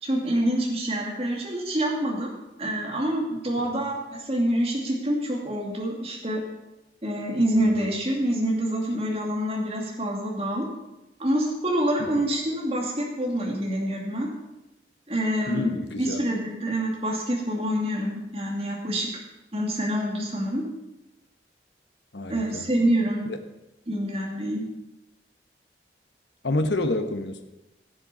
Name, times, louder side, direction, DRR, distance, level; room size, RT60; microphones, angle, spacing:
voice 1, 0.0-2.3 2.6-6.4 7.0-10.7 11.2-14.3 15.1-19.2 19.5-20.6 22.3-23.3 23.9-24.6, right 1 dB, 35° right, -2 dB, 2.4 m, -26 dB
voice 2, 7.6-8.0 12.0-12.2 15.5-16.2 22.1-22.7 23.2-23.4 26.4-27.4, left 2 dB, 85° left, 6 dB, 1.2 m, -29 dB
15.5 x 7.7 x 5.5 m, 0.98 s
head